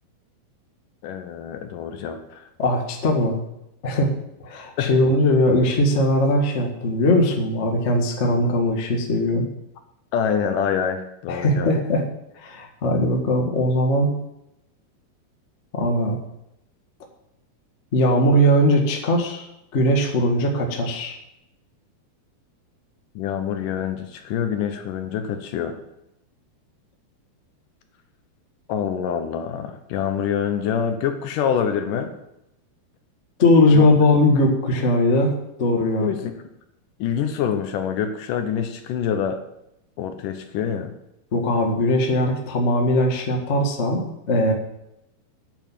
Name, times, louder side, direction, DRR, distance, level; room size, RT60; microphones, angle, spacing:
voice 1, 1.0-2.5 4.8-4.9 10.1-11.7 23.2-25.8 28.7-32.1 33.7-33.9 36.0-36.3 37.0-39.4 40.0-40.9, left 8 dB, 70° left, 7 dB, 2.1 m, -26 dB
voice 2, 2.6-3.4 3.8-4.1 4.4-9.4 11.3-12.0 12.4-14.1 15.7-16.2 17.9-19.4 19.7-21.2 33.4-35.3 35.6-36.1 41.3-44.5, left 1 dB, 90° left, 1 dB, 0.6 m, -20 dB
9.3 x 8.0 x 7.2 m, 0.85 s
omnidirectional pair, 4.5 m